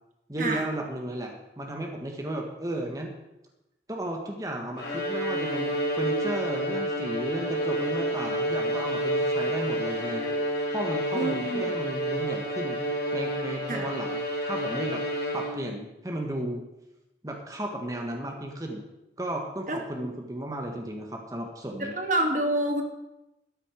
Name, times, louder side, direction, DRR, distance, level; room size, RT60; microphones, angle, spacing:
voice 1, 0.3-3.1 3.9-10.3 10.7-12.8 13.1-15.0 15.3-16.6 17.2-18.8 19.2-22.0, right 1 dB, 20° right, 1 dB, 1.4 m, -34 dB
Bowed string instrument, 4.8-15.8, equal, 65° left, 4.6 m, -29 dB
voice 2, 11.1-11.7 13.7-13.9 19.7-19.8 21.8-22.8, right 1 dB, 45° right, 3 dB, 1.5 m, -27 dB
13.0 x 9.9 x 5.1 m, 0.93 s
head